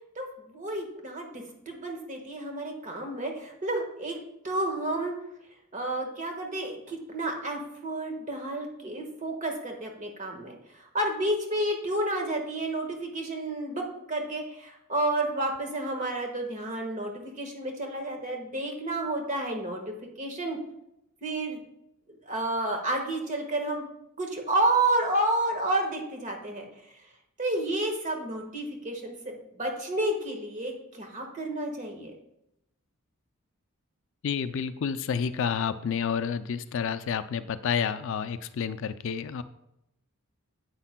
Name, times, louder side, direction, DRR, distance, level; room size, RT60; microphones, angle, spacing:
voice 1, 0.1-4.2 4.4-5.1 5.7-10.5 10.9-20.6 21.2-21.6 22.2-23.8 24.2-26.7 27.4-32.1, right 1 dB, 35° right, 2 dB, 1.4 m, -30 dB
voice 2, 34.2-39.4, left 7 dB, 60° left, 12 dB, 0.4 m, -30 dB
9.8 x 8.1 x 2.2 m, 0.82 s
head